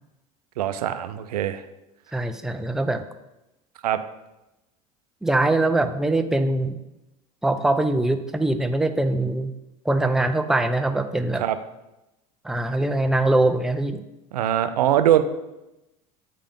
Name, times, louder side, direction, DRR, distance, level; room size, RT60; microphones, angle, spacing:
voice 1, 0.6-1.6 3.8-4.0 11.4-11.6 14.3-15.2, right 11 dB, 90° right, 10 dB, 0.4 m, -22 dB
voice 2, 2.1-3.0 5.2-6.8 7.4-9.5 9.8-11.4 12.4-14.0, right 2 dB, ahead, 8 dB, 0.5 m, -22 dB
8.3 x 3.4 x 3.8 m, 0.95 s
hypercardioid pair, 85°, 19 cm